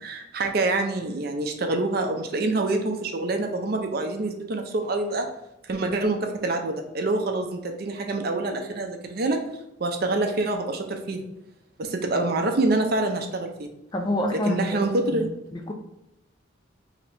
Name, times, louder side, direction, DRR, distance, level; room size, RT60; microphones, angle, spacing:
voice 1, 0.0-5.3 5.7-9.4 9.8-11.2 11.8-13.7 14.5-15.3, right 2 dB, 50° right, 4 dB, 0.5 m, -26 dB
voice 2, 13.9-14.8 15.1-15.2 15.5-15.7, left 1 dB, 20° left, 3 dB, 0.4 m, -27 dB
3.2 x 2.9 x 4.0 m, 0.89 s
head